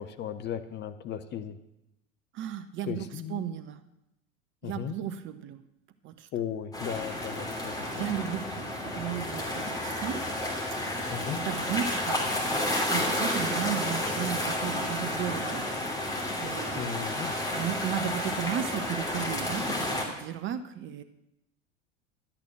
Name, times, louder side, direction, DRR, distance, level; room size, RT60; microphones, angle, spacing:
voice 1, 0.0-1.6 2.8-3.5 4.6-4.9 6.3-8.1 11.1-11.4 16.8-17.3, left 9 dB, 25° left, 10 dB, 0.7 m, -36 dB
voice 2, 2.3-3.8 4.6-5.6 6.0-6.3 7.9-10.2 10.8-15.7 16.4-17.2 17.5-21.0, right 10 dB, 30° right, 12 dB, 0.7 m, -35 dB
sound 1, 6.7-20.1, left 1 dB, 10° left, 2.7 m, -31 dB
12.0 x 8.8 x 6.1 m, 0.87 s
figure-of-eight pair, 80°, 40 cm